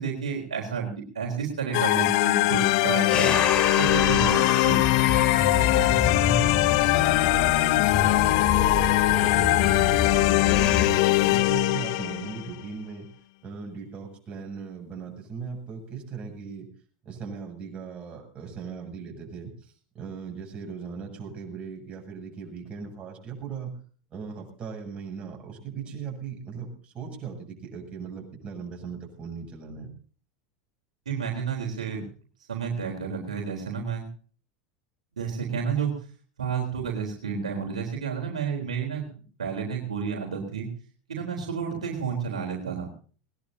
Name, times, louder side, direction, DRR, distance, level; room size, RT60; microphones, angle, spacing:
voice 1, 0.0-3.4 3.8-4.8 31.1-32.0 32.5-34.1 35.2-35.9 36.4-40.7 41.1-42.9, right 6 dB, 80° right, -1 dB, 3.8 m, -31 dB
sound 1, 1.7-12.5, left 20 dB, 60° left, 0.7 m, -22 dB
sound 2, 3.1-10.9, left 4 dB, 30° left, 3.0 m, -28 dB
voice 2, 6.3-13.1 13.4-16.7 17.0-23.7 24.1-29.9, right 6 dB, 30° right, 1 dB, 7.6 m, -38 dB
20.0 x 20.0 x 2.8 m, 0.41 s
hypercardioid pair, 85°, 4 cm